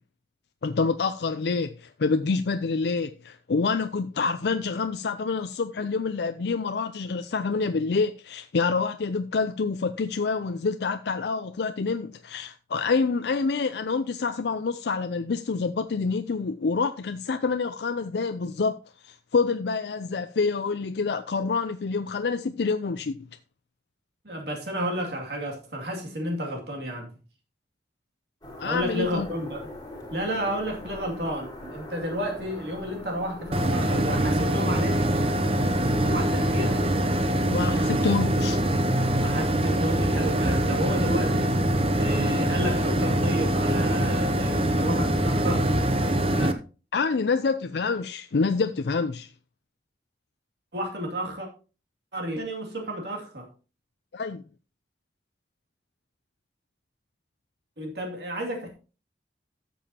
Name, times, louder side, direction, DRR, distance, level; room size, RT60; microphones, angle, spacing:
voice 1, 0.6-18.8 19.0-23.2 28.6-29.3 37.4-38.6 46.3-46.5 46.9-49.3 54.1-54.4, left 4 dB, 70° left, 0.4 m, -27 dB
voice 2, 24.2-27.1 28.6-29.6 30.1-35.0 35.8-36.8 39.2-41.6 41.9-45.7 50.7-51.5 52.1-53.5 57.8-58.7, equal, 70° right, 2.5 m, -31 dB
sound 1, 28.4-36.8, left 1 dB, 20° left, 2.1 m, -41 dB
sound 2, 33.5-46.5, right 1 dB, 30° right, 0.8 m, -24 dB
13.0 x 7.0 x 2.9 m
head